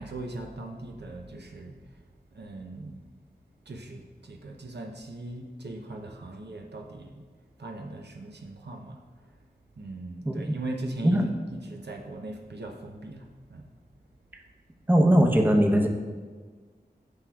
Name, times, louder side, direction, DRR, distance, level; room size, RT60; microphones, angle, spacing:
voice 1, 0.0-1.7 2.3-3.0 3.7-7.2 7.6-9.0 9.8-13.7, right 2 dB, 85° right, 2 dB, 0.7 m, -39 dB
voice 2, 14.9-15.9, equal, 10° right, 2 dB, 0.7 m, -20 dB
9.5 x 6.1 x 2.3 m, 1.5 s
wide cardioid pair, 45°, 17 cm